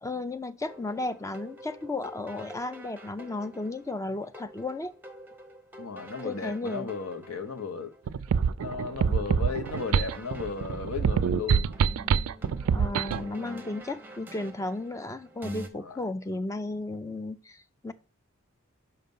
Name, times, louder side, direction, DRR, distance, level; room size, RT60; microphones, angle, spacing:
voice 1, 0.0-4.9 6.2-6.9 12.7-17.9, left 2 dB, 15° left, 0.4 m, -34 dB
sound 1, 0.7-15.7, right 1 dB, 10° right, 0.8 m, -47 dB
voice 2, 5.8-7.9 8.6-11.7 13.3-13.7 15.8-16.0, left 4 dB, 75° left, 0.9 m, -35 dB
sound 2, 8.1-13.3, right 6 dB, 75° right, 0.3 m, -25 dB
5.8 x 5.4 x 5.4 m
head